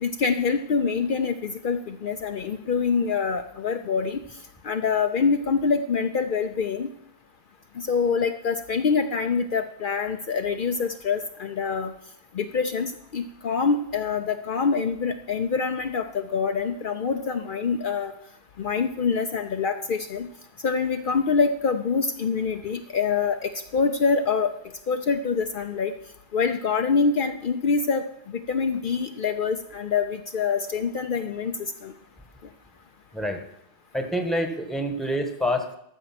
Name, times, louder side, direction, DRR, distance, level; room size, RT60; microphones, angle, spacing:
voice 1, 0.0-4.2 4.6-6.9 7.8-11.9 12.3-18.1 18.6-20.3 20.6-24.5 24.9-25.9 26.3-31.9, left 5 dB, 60° left, 7 dB, 0.8 m, -25 dB
voice 2, 33.9-35.8, equal, ahead, 6 dB, 1.2 m, -27 dB
13.5 x 6.5 x 5.9 m, 0.75 s
omnidirectional pair, 1.0 m